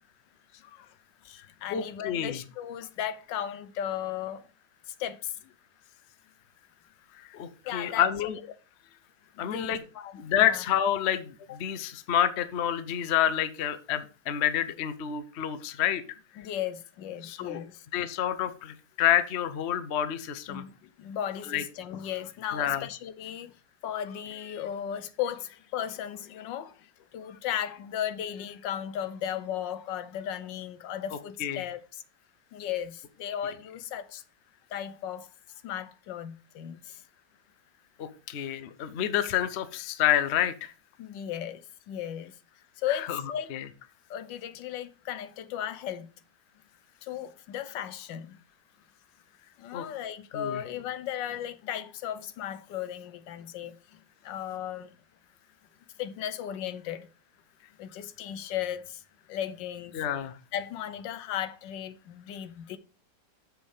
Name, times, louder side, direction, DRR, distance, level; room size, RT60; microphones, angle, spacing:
voice 1, 0.5-0.9 1.2-4.4 4.9-5.5 7.6-8.0 9.3-10.6 16.4-17.8 20.5-23.5 23.8-32.0 32.5-34.2 34.7-35.3 35.6-37.0 41.0-42.3 42.8-43.5 44.1-46.1 47.0-48.4 49.6-54.9 56.0-57.1 57.8-59.0 59.3-59.9 60.5-62.8, left 10 dB, 80° left, 1.4 m, -36 dB
voice 2, 1.4-2.4 7.1-8.4 9.4-9.9 10.2-16.0 16.3-16.5 17.2-17.6 17.9-20.6 21.5-21.6 22.5-22.9 31.4-31.6 38.0-40.7 43.1-43.2 43.5-43.7 49.7-49.9 50.3-50.6 59.9-60.4, left 10 dB, 55° left, 0.8 m, -28 dB
7.2 x 6.3 x 4.9 m
omnidirectional pair, 1.9 m